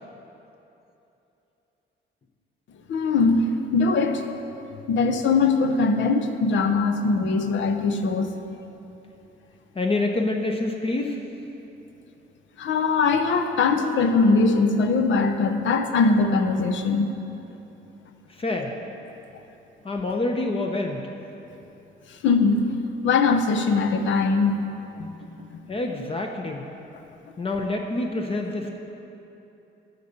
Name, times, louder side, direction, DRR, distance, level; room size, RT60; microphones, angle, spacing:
voice 1, 2.9-4.2 4.9-8.3 12.6-17.1 22.1-22.8 23.0-24.6 25.0-25.6, left 4 dB, 70° left, 6 dB, 0.7 m, -21 dB
voice 2, 9.7-11.2 18.3-18.7 19.8-21.1 25.7-26.7 27.4-28.8, left 2 dB, 30° left, 2 dB, 0.7 m, -27 dB
12.0 x 4.1 x 7.1 m, 3.0 s
cardioid pair, 90°, 20 cm